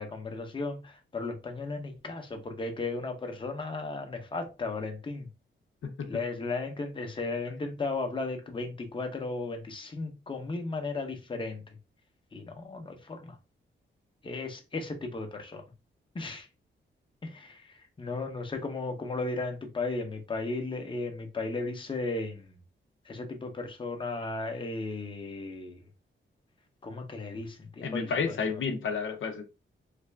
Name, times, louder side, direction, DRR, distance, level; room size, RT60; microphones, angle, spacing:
voice 1, 0.0-5.3 6.1-11.6 12.3-13.4 14.2-15.6 16.1-16.5 17.2-17.7 18.0-22.6 23.1-25.8 26.8-28.1 28.5-28.6, left 3 dB, 25° left, 0.7 m, -35 dB
voice 2, 27.8-29.4, left 5 dB, 80° left, 0.6 m, -31 dB
3.3 x 2.4 x 3.2 m
wide cardioid pair, 140°, 20 cm